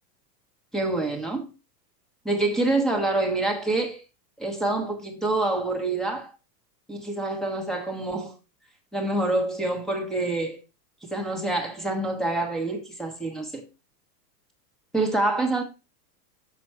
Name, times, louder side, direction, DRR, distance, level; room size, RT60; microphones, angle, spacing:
voice 1, 0.7-1.5 2.2-4.0 4.4-6.3 6.9-8.3 8.9-10.6 11.1-13.6 14.9-15.6, right 2 dB, ahead, 1.2 m, -26 dB
7.0 x 6.1 x 4.4 m
supercardioid pair, 160°, 50 cm